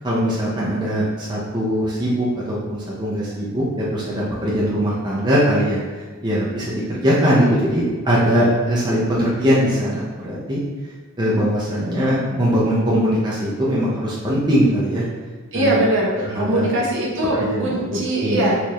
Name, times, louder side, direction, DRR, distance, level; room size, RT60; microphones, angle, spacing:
voice 1, 0.0-10.6 11.2-15.0 15.5-15.8 16.2-16.7 17.4-18.5, equal, 20° right, -7 dB, 0.6 m, -21 dB
voice 2, 15.5-18.6, right 1 dB, 55° right, -3 dB, 0.8 m, -21 dB
4.4 x 2.5 x 3.1 m, 1.4 s
head